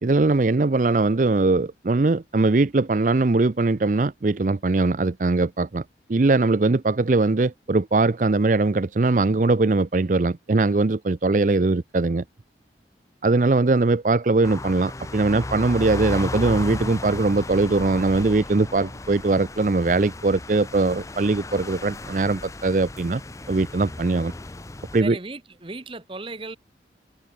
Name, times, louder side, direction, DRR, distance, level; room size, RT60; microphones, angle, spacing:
voice 1, 0.0-5.8 6.1-12.2 13.2-23.2 23.5-24.3 24.9-25.1, right 3 dB, 45° right, 0.5 m, -21 dB
sound 1, 14.4-25.0, left 2 dB, 15° left, 0.5 m, -35 dB
voice 2, 25.0-26.6, right 3 dB, 30° right, 1.0 m, -35 dB
head